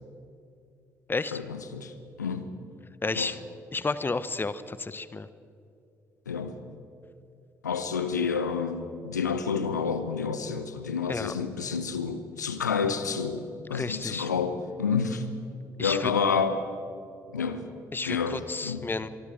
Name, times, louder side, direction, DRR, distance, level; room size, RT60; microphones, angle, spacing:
voice 1, 1.3-2.5 3.1-3.3 6.3-6.6 7.6-15.3 15.8-16.7 17.3-17.6 18.0-18.9, left 5 dB, 85° left, 11 dB, 1.0 m, -29 dB
voice 2, 3.0-3.4 3.7-5.3 11.1-11.3 13.7-14.3 15.8-16.1 17.9-19.1, left 3 dB, 20° left, 15 dB, 1.1 m, -31 dB
24.5 x 23.0 x 5.1 m, 2.6 s
figure-of-eight pair, 45°, 9 cm